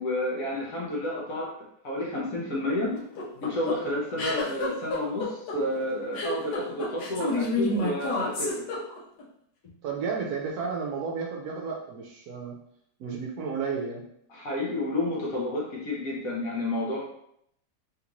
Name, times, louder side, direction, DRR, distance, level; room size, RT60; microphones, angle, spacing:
voice 1, 0.0-1.5 1.8-2.9 3.4-8.7 14.3-17.1, left 1 dB, 60° left, -3 dB, 1.1 m, -30 dB
sound 1, 2.9-9.2, left 2 dB, 80° left, 1.4 m, -29 dB
voice 2, 9.8-12.5 13.0-14.0, right 5 dB, 70° right, -1 dB, 1.0 m, -32 dB
3.4 x 2.5 x 2.9 m, 0.74 s
omnidirectional pair, 1.8 m